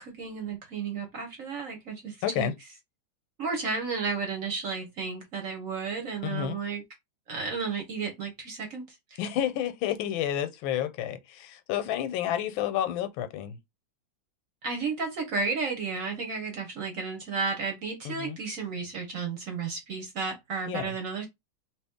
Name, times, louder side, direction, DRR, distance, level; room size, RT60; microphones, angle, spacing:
voice 1, 0.0-2.5 3.4-6.8 7.3-9.2 14.6-21.3, right 5 dB, 55° right, 1.0 m, -33 dB
voice 2, 2.2-2.5 6.2-6.6 9.2-13.6 18.0-18.4 20.7-20.9, left 11 dB, 85° left, 1.4 m, -30 dB
2.9 x 2.9 x 3.5 m
omnidirectional pair, 2.1 m